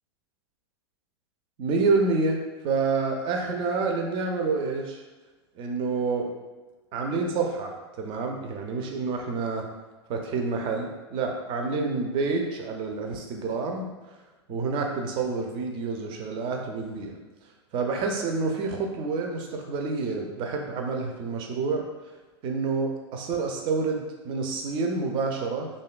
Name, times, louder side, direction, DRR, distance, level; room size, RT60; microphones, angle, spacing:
voice 1, 1.6-5.0 5.6-6.3 6.9-9.7 10.1-13.9 14.5-17.1 17.7-21.9 22.4-25.7, right 4 dB, 35° right, 2 dB, 0.4 m, -28 dB
2.6 x 2.2 x 2.3 m, 1.2 s
hypercardioid pair, 105°, 15 cm